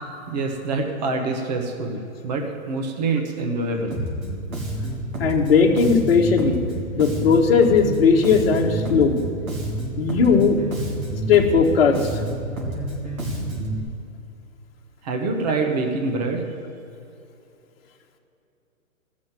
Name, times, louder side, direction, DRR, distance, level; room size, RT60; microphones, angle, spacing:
voice 1, 0.3-4.0 15.0-16.4, right 3 dB, 30° right, 3 dB, 1.2 m, -25 dB
Bass guitar, 3.9-13.8, right 1 dB, 80° right, 3.4 m, -29 dB
voice 2, 5.2-6.6 6.9-9.2 10.0-10.6 11.3-12.2, left 5 dB, 45° left, 1 dB, 1.4 m, -17 dB
15.5 x 6.4 x 7.6 m, 2.8 s
hypercardioid pair, 165°, 41 cm